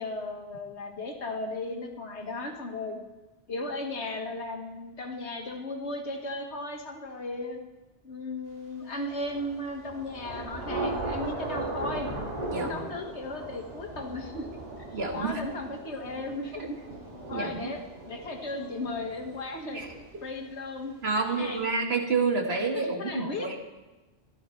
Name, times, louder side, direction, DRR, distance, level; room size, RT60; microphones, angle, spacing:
voice 1, 0.0-3.0 3.5-7.6 8.0-12.1 12.5-14.5 14.9-16.8 17.3-19.8 20.2-21.9 22.5-23.5, left 2 dB, 85° left, 3 dB, 1.8 m, -36 dB
Thunder / Rain, 9.1-20.7, right 2 dB, 35° right, 2.6 m, -38 dB
voice 2, 12.5-12.8 14.9-15.4 17.3-17.7 19.7-20.2 21.0-23.6, right 4 dB, 70° right, 3 dB, 1.7 m, -29 dB
14.5 x 12.0 x 4.4 m, 1.2 s
omnidirectional pair, 1.1 m